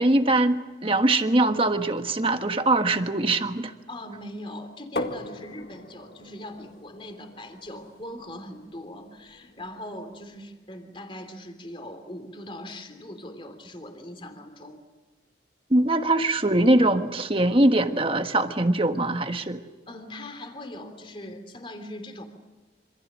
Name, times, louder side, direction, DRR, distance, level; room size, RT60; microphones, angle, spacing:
voice 1, 0.0-3.7 15.7-19.6, right 2 dB, 30° right, 7 dB, 1.4 m, -22 dB
voice 2, 3.9-14.8 19.9-22.3, left 1 dB, 30° left, 7 dB, 3.1 m, -40 dB
sound 1, 5.0-10.6, left 1 dB, 55° left, 2.0 m, -40 dB
27.0 x 26.5 x 6.3 m, 1.2 s
head